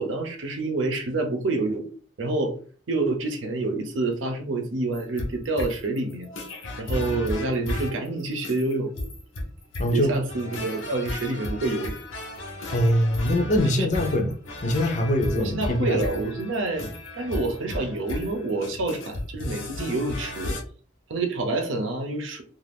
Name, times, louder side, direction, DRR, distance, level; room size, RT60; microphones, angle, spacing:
voice 1, 0.0-1.9 2.2-2.6 2.9-6.3 6.8-8.9 9.9-11.9 13.6-13.9 15.3-16.8 17.1-20.6 21.1-22.4, right 2 dB, 85° right, 0.7 m, -27 dB
sound 1, 4.9-20.6, left 1 dB, 85° left, 0.8 m, -34 dB
voice 2, 9.8-10.1 12.7-14.3 14.6-16.0 16.8-16.9, equal, 40° left, 0.5 m, -23 dB
2.5 x 2.5 x 3.4 m
head